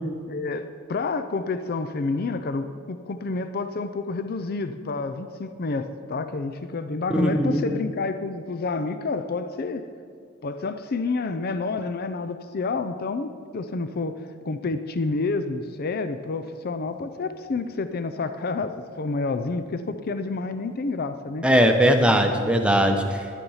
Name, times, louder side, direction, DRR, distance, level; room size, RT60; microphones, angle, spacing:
voice 1, 0.3-9.8 10.4-14.1 14.5-21.4, left 3 dB, 50° left, 10 dB, 0.5 m, -29 dB
voice 2, 7.1-7.7 21.4-23.2, equal, 5° right, 4 dB, 0.9 m, -19 dB
10.5 x 9.9 x 5.6 m, 2.1 s
head